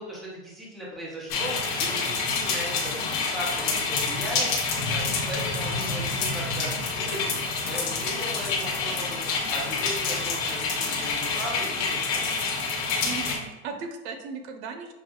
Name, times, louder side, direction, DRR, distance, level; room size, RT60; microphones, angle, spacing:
voice 1, 0.0-4.5 4.9-9.2 9.5-12.5, equal, ahead, -6 dB, 0.6 m, -37 dB
sound 1, 1.3-13.4, left 4 dB, 50° left, 0.9 m, -27 dB
voice 2, 13.0-14.9, right 5 dB, 90° right, 5 dB, 0.7 m, -37 dB
6.0 x 2.4 x 2.2 m, 1.0 s
supercardioid pair, 155°, 32 cm